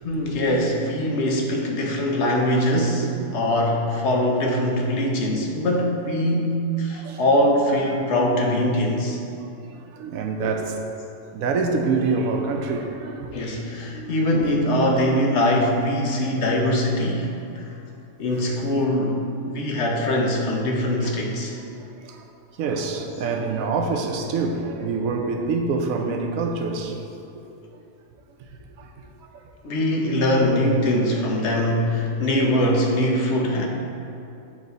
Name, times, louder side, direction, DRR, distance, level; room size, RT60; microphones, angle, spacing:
voice 1, 0.0-3.1 3.3-9.2 13.3-17.7 18.2-21.5 29.6-33.7, left 1 dB, 60° left, 0 dB, 1.0 m, -22 dB
voice 2, 4.6-5.1 6.9-7.5 8.0-8.1 9.4-10.8 11.3-13.4 13.9-14.2 18.2-18.6 19.0-19.1 19.4-19.7 21.0-21.3 21.6-22.3 22.6-27.1 28.4-28.5 28.8-28.9 29.2-29.4 30.1-30.2 31.2-31.7 32.2-32.4 33.6-33.7, right 4 dB, 90° right, 4 dB, 1.0 m, -27 dB
8.4 x 3.1 x 4.0 m, 2.7 s
omnidirectional pair, 1.4 m